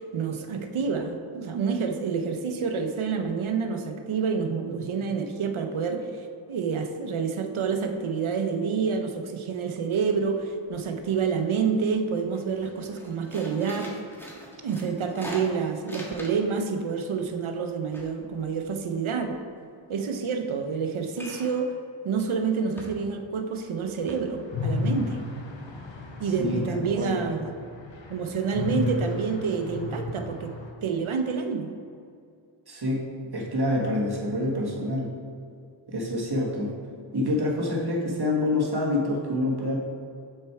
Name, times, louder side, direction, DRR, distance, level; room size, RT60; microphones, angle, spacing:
voice 1, 0.0-13.9 14.6-19.3 19.9-21.7 22.0-25.2 26.2-27.5 28.1-30.5 30.8-31.7, right 5 dB, 75° right, 6 dB, 0.8 m, -28 dB
sound 1, 9.8-10.3 10.6-11.4 11.8-12.0 12.3-16.6 16.9-19.3 21.1-21.7 22.1-22.3 22.8-23.3 23.7-23.8 24.1-24.2, equal, 5° left, 1.4 m, -43 dB
sound 2, 24.5-30.7, left 3 dB, 65° left, 1.0 m, -33 dB
voice 2, 32.7-33.0 33.3-35.1 35.9-36.7 37.1-39.8, left 1 dB, 50° right, -2 dB, 1.5 m, -26 dB
6.5 x 4.4 x 4.7 m, 2.4 s
cardioid pair, 50°, 48 cm